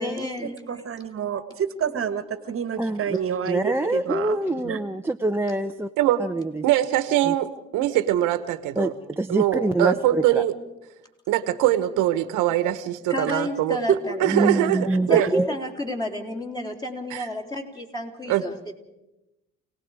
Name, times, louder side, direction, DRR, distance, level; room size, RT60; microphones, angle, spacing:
voice 1, 0.0-0.8 13.1-14.6 15.1-18.8, left 1 dB, 15° left, 1 dB, 3.5 m, -31 dB
voice 2, 0.7-4.8 13.3-13.4 13.9-14.4 15.1-15.3, right 7 dB, 45° right, 11 dB, 1.5 m, -28 dB
voice 3, 2.8-3.2 3.5-5.9 6.2-6.6 7.3-7.4 8.8-10.4 14.3-15.5, right 2 dB, 5° right, 4 dB, 0.8 m, -25 dB
voice 4, 6.6-8.9 9.3-10.5 11.3-13.8 14.2-15.3 17.1-17.3 18.3-18.4, right 13 dB, 85° right, 12 dB, 1.3 m, -22 dB
29.5 x 18.5 x 4.9 m, 0.96 s
supercardioid pair, 85°, 30 cm